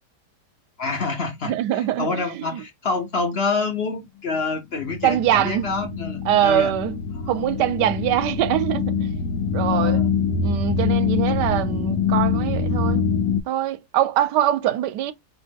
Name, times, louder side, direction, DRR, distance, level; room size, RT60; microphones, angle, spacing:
voice 1, 0.8-6.7 7.1-7.3 9.7-10.1, left 4 dB, 45° left, 0.9 m, -27 dB
voice 2, 1.4-2.6 5.0-5.7 6.3-7.0 7.3-9.1 9.5-10.0 10.4-13.0 13.5-15.1, right 11 dB, 85° right, 1.2 m, -23 dB
sound 1, 4.9-13.4, left 6 dB, 70° left, 1.2 m, -24 dB
4.5 x 2.5 x 3.4 m
omnidirectional pair, 1.8 m